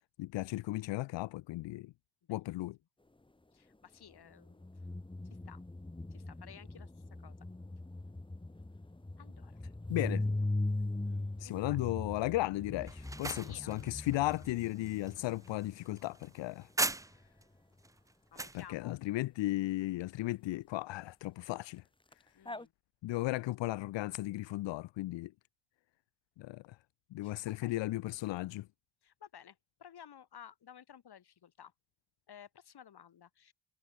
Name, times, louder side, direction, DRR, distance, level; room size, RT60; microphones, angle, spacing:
voice 1, 0.2-1.9 2.3-2.8 9.9-10.2 11.4-16.7 18.5-21.8 23.0-25.3 26.4-26.8 27.1-28.7, left 17 dB, 80° left, 0.6 m, -35 dB
voice 2, 2.2-2.6 3.5-4.8 5.4-5.6 6.1-6.9 7.2-7.4 9.2-9.6 11.0-11.8 13.0-13.8 18.3-19.0 22.3-22.7 27.2-27.4 27.6-27.8 29.0-31.7 32.3-33.5, left 9 dB, 60° left, 2.9 m, -55 dB
sound 1, 4.4-15.9 22.1-22.2 22.4-22.6, left 2 dB, 10° left, 1.8 m, -39 dB
sound 2, 12.9-17.4 17.8-18.6, right 2 dB, 10° right, 0.4 m, -39 dB
cardioid pair, 85°, 43 cm